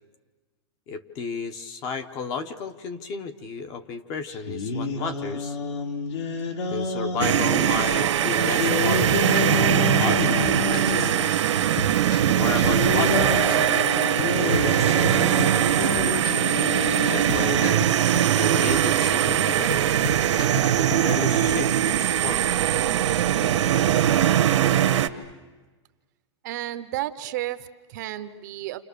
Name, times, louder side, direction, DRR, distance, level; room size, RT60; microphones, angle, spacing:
voice 1, 0.9-5.6 6.7-9.0 10.0-11.4 12.2-13.5 14.3-15.9 17.1-17.8 18.3-20.0 20.8-22.6, left 5 dB, 25° left, 9 dB, 1.0 m, -33 dB
sound 1, 4.3-7.6 8.4-11.4 12.5-17.7, left 5 dB, 70° left, 3.2 m, -29 dB
sound 2, 7.2-25.1, right 11 dB, 75° right, 1.3 m, -21 dB
sound 3, 9.0-10.1 10.4-11.0 11.3-11.4 11.8-12.9 13.1-15.6 15.9-16.5 16.8-17.0 17.3-18.4 18.7-19.2 19.5-21.1 21.4-21.7, left 8 dB, 50° left, 0.8 m, -36 dB
voice 2, 26.4-28.8, right 14 dB, 40° right, 11 dB, 0.8 m, -32 dB
29.0 x 28.5 x 6.8 m, 1.3 s
supercardioid pair, 175°, 15 cm